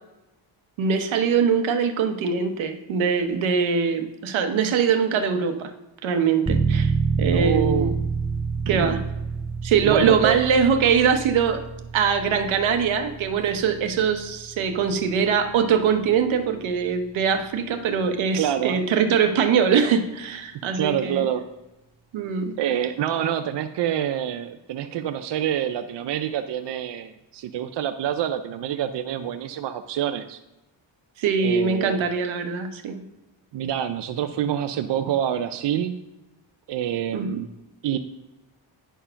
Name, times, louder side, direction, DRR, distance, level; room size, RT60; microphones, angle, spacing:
voice 1, 0.8-5.7 6.0-7.9 8.7-9.0 9.6-11.6 11.9-21.2 22.1-22.5 31.2-33.0 37.1-37.4, right 6 dB, 90° right, 8 dB, 1.1 m, -22 dB
sound 1, 6.5-17.0, right 5 dB, 15° right, 0.3 m, -28 dB
voice 2, 7.3-7.9 8.7-9.0 9.8-10.4 18.3-18.8 20.8-21.4 22.6-30.4 31.4-32.0 33.5-36.0 36.7-37.5 37.8-38.0, right 10 dB, 65° right, 8 dB, 0.6 m, -26 dB
10.0 x 4.6 x 5.7 m, 0.99 s
cardioid pair, 115°, 46 cm